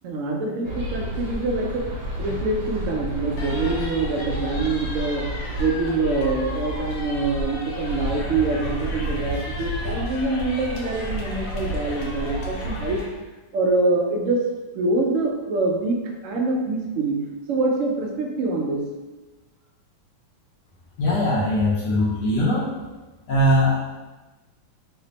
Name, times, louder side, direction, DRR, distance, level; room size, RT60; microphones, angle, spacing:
voice 1, 0.0-1.9 2.2-5.3 5.6-13.0 13.5-14.4 14.7-17.2 17.5-18.8, right 3 dB, 90° right, 0 dB, 0.6 m, -25 dB
sound 1, 0.6-13.0, equal, 75° right, 1.3 m, -31 dB
sound 2, 3.4-13.0, left 1 dB, 85° left, 1.4 m, -37 dB
voice 2, 21.0-22.7 23.3-23.7, left 1 dB, 70° left, -6 dB, 1.3 m, -20 dB
3.4 x 2.1 x 3.9 m, 1.2 s
omnidirectional pair, 1.9 m